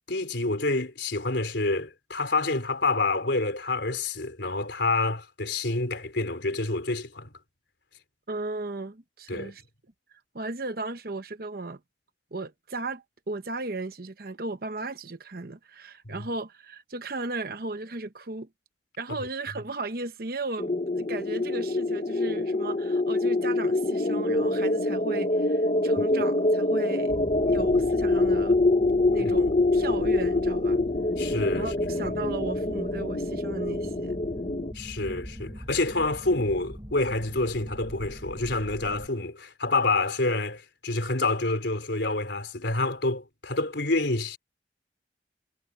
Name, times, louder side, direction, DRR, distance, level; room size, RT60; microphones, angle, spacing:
voice 1, 0.1-7.3 9.3-9.5 16.0-16.2 29.2-29.3 31.2-32.0 34.7-44.4, left 2 dB, 70° left, 3.7 m, -28 dB
voice 2, 8.3-9.6 10.1-11.8 12.3-18.5 19.0-28.6 29.1-30.8 31.5-34.2, right 2 dB, 50° right, 1.0 m, -35 dB
sound 1, 20.6-34.7, left 2 dB, 35° left, 0.8 m, -25 dB
sound 2, 27.1-39.1, equal, 20° right, 6.4 m, -41 dB
head